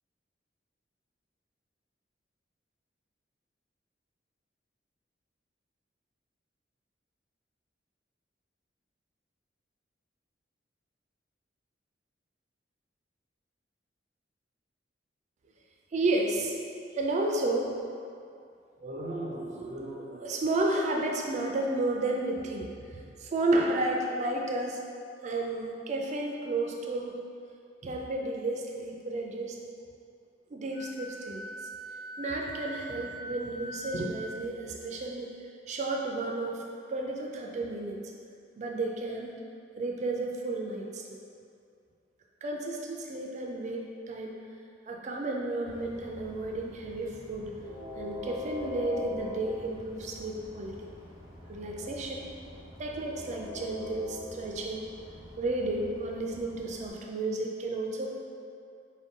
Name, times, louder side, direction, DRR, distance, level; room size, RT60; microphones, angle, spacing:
voice 1, 15.9-16.5 16.9-17.7 18.8-24.8 25.2-27.1 27.8-29.6 30.5-31.4 32.2-35.3 35.7-36.6 36.9-38.0 38.6-39.3 39.8-41.2 42.4-44.4 44.9-47.5 47.9-50.9 51.5-52.2 52.8-54.9 55.4-58.2, right 2 dB, 40° right, 0 dB, 0.3 m, -32 dB
Wind instrument woodwind instrument, 30.7-34.3, equal, 45° left, 1.2 m, -42 dB
Train, 45.6-56.9, left 2 dB, 65° left, 1.3 m, -43 dB
4.9 x 2.2 x 3.6 m, 2.4 s
head